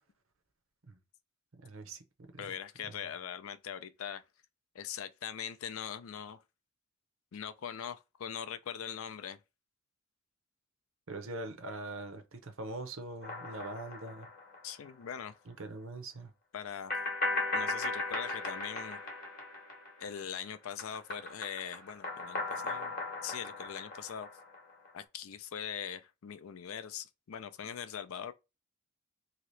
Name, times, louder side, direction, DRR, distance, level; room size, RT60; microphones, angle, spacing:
voice 1, 1.6-2.0 2.3-2.5 11.1-14.3 15.5-16.3, right 2 dB, 65° right, 0.7 m, -42 dB
voice 2, 2.4-4.2 4.7-6.4 7.3-9.4 14.6-15.4 16.5-16.9 17.5-19.0 20.0-23.0 23.2-24.3 24.9-28.3, left 8 dB, 70° left, 0.4 m, -41 dB
sound 1, 13.2-14.9 15.2-15.3 16.9-20.4 20.6-24.9, left 2 dB, 40° left, 0.9 m, -37 dB
2.9 x 2.9 x 3.1 m
head